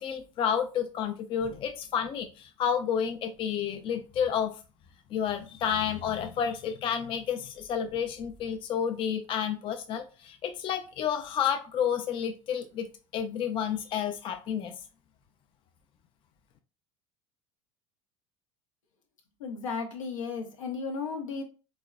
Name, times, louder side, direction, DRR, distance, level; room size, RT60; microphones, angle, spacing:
voice 1, 0.0-4.5 5.1-12.9 13.1-14.8, left 8 dB, 30° left, 7 dB, 0.4 m, -30 dB
voice 2, 19.4-21.4, left 5 dB, 75° left, 3 dB, 0.7 m, -34 dB
3.7 x 2.0 x 2.2 m, 0.33 s
hypercardioid pair, 75°, 17 cm